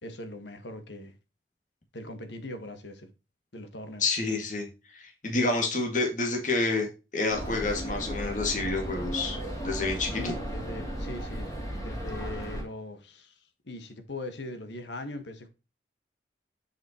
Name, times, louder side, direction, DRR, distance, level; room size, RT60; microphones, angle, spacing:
voice 1, 0.0-1.1 1.9-3.1 3.5-4.0 10.1-13.3 13.6-15.5, left 2 dB, 75° left, 1.5 m, -40 dB
voice 2, 4.0-6.9 7.1-9.4 9.6-10.3, left 3 dB, 45° left, 2.0 m, -28 dB
sound 1, 7.3-12.6, right 1 dB, 20° left, 2.9 m, -35 dB
7.4 x 5.8 x 2.9 m
head